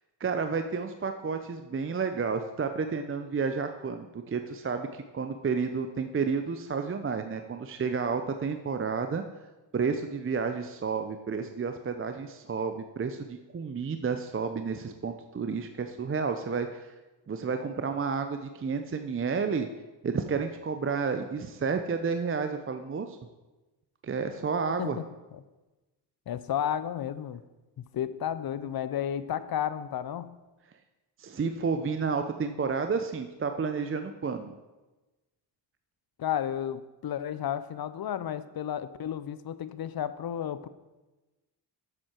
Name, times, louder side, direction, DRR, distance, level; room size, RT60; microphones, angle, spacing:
voice 1, 0.2-4.9 5.1-9.2 9.7-16.9 17.3-19.7 20.0-23.2 24.0-25.0 31.2-34.5, right 5 dB, 25° right, 7 dB, 0.6 m, -31 dB
voice 2, 26.3-27.4 27.8-30.3 36.2-40.7, left 10 dB, 50° left, 14 dB, 0.6 m, -32 dB
7.7 x 7.3 x 4.4 m, 1.1 s
cardioid pair, 60°, 49 cm